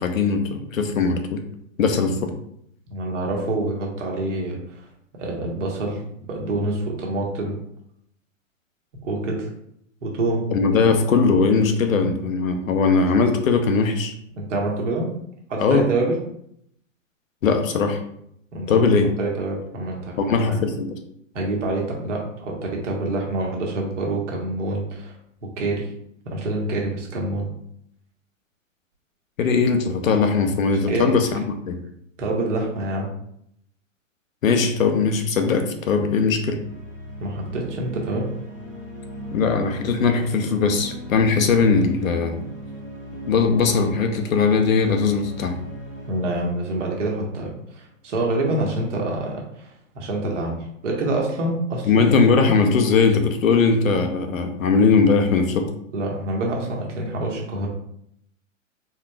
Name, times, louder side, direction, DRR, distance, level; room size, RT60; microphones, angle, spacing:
voice 1, 0.0-1.4 1.8-2.3 10.5-14.1 15.6-15.9 17.4-18.0 18.7-19.1 20.2-21.0 29.4-31.8 34.4-36.6 39.3-42.4 43.3-45.6 51.8-55.7, left 4 dB, 80° left, 6 dB, 0.8 m, -20 dB
voice 2, 2.9-4.8 5.1-6.0 6.3-7.5 9.0-9.5 10.0-10.4 14.4-15.1 15.5-16.2 18.5-18.8 19.2-20.6 21.3-25.1 25.6-25.9 26.2-27.5 30.9-31.2 32.2-33.1 37.2-38.3 46.1-52.0 52.4-52.6 55.9-57.7, right 2 dB, 65° right, -1 dB, 1.3 m, -26 dB
sound 1, 36.3-47.8, equal, 5° right, 1.0 m, -38 dB
4.1 x 3.1 x 2.3 m, 0.71 s
hypercardioid pair, 130°, 40 cm